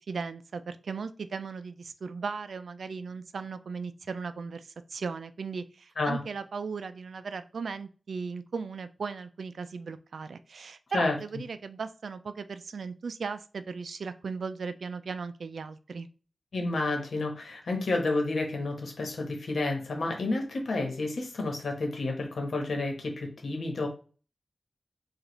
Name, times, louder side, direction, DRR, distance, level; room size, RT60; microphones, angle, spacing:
voice 1, 0.0-16.1, right 5 dB, 85° right, 12 dB, 0.3 m, -37 dB
voice 2, 16.5-23.9, left 2 dB, 80° left, 2 dB, 1.2 m, -30 dB
4.9 x 2.4 x 3.1 m, 0.37 s
wide cardioid pair, 90°, 0 cm